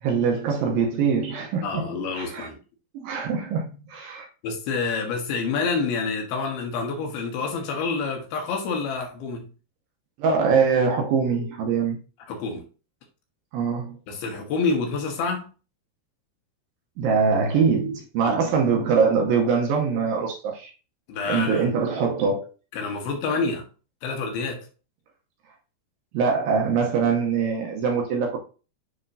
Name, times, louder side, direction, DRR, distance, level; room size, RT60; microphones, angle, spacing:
voice 1, 0.0-1.8 2.2-2.5 2.9-4.3 10.2-12.0 13.5-14.0 17.0-20.7 21.2-22.5 26.1-28.4, right 5 dB, 75° right, 2.4 m, -23 dB
voice 2, 1.6-2.6 4.4-9.5 12.3-12.6 14.1-15.5 18.2-18.5 21.1-21.7 22.7-23.6 24.0-24.7, left 4 dB, 75° left, 2.9 m, -28 dB
9.7 x 3.7 x 2.7 m
omnidirectional pair, 4.7 m